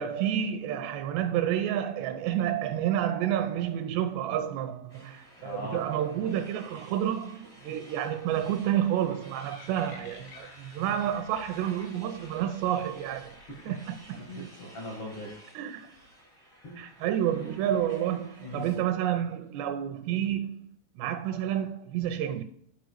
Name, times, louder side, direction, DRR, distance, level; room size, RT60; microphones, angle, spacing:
voice 1, 0.0-13.4 13.7-14.3 15.6-15.9 16.8-22.4, right 10 dB, 85° right, 2.5 m, -30 dB
sound 1, 4.9-18.8, right 1 dB, 25° left, 0.5 m, -54 dB
voice 2, 5.4-5.8 14.1-15.3 16.6-17.1 18.4-18.7, left 1 dB, 70° left, 1.3 m, -40 dB
sound 2, 9.0-14.2, left 4 dB, 85° left, 1.6 m, -53 dB
11.5 x 4.6 x 4.6 m
omnidirectional pair, 5.2 m